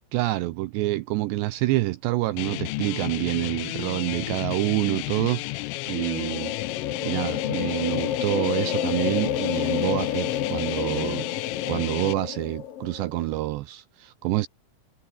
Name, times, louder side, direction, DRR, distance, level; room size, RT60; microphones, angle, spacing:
voice 1, 0.1-6.5 7.0-14.5, right 17 dB, 80° right, 2.5 m, -27 dB
sound 1, 2.4-12.1, left 25 dB, 85° left, 3.0 m, -32 dB
sound 2, 5.6-13.2, left 10 dB, 55° left, 3.0 m, -30 dB
omnidirectional pair, 5.8 m